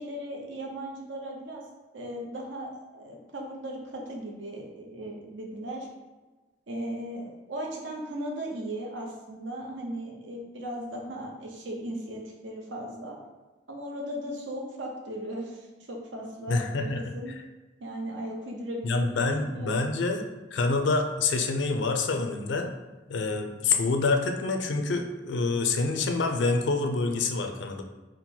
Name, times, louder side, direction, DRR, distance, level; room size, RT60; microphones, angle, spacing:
voice 1, 0.0-1.6 1.9-5.9 6.7-13.2 13.7-17.3 17.8-19.9, right 1 dB, 85° right, 0 dB, 0.8 m, -37 dB
voice 2, 16.5-17.4 18.8-20.2 20.5-22.7 23.1-27.8, left 3 dB, 75° left, 5 dB, 0.4 m, -27 dB
3.7 x 2.1 x 4.3 m, 1.2 s
head